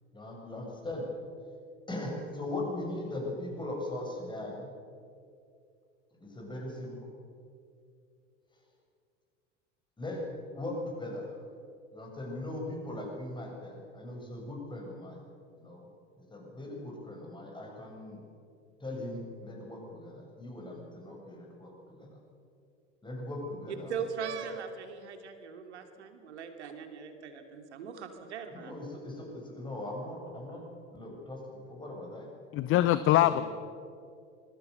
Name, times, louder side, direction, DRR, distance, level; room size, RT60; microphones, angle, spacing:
voice 1, 0.1-1.1 1.9-4.7 6.2-7.1 10.0-10.2 10.6-11.3 11.9-15.2 15.5-15.9 16.2-18.2 18.8-22.2 23.0-23.9 28.5-30.6 30.9-32.3 33.2-33.4, left 1 dB, 15° left, 0 dB, 7.1 m, -39 dB
voice 2, 23.7-28.7, right 6 dB, 70° right, 6 dB, 2.9 m, -40 dB
voice 3, 32.5-33.4, left 14 dB, 35° left, 13 dB, 0.9 m, -23 dB
26.5 x 21.0 x 6.9 m, 2.4 s
figure-of-eight pair, 75°, 36 cm